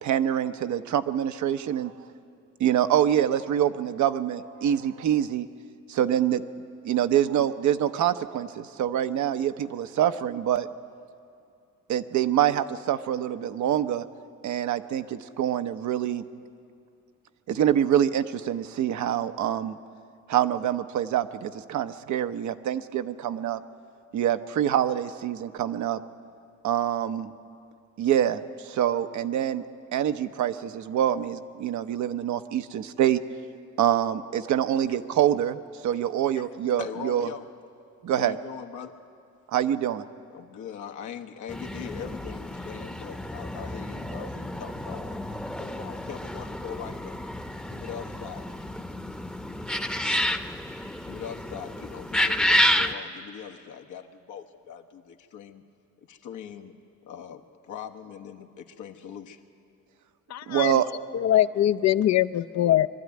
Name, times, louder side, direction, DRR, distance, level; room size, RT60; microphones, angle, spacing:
voice 1, 0.0-1.9 2.6-5.5 5.9-6.4 6.8-10.7 11.9-14.0 14.4-16.2 17.5-19.8 20.3-23.6 24.1-26.0 26.6-27.3 28.0-29.6 29.9-33.2 33.8-37.3 38.0-38.4 39.5-40.0 60.5-60.9, right 10 dB, 70° right, 10 dB, 0.8 m, -25 dB
voice 2, 36.8-37.5 38.1-38.9 40.3-47.2 47.7-48.5 51.0-55.6 56.1-56.7 57.1-59.4, left 8 dB, 80° left, 4 dB, 1.3 m, -41 dB
sound 1, 41.5-52.9, equal, 5° left, 0.8 m, -30 dB
voice 3, 60.3-60.8 61.1-62.9, left 12 dB, 60° left, 12 dB, 0.6 m, -22 dB
22.5 x 12.5 x 9.4 m, 2.4 s
cardioid pair, 90°, 30 cm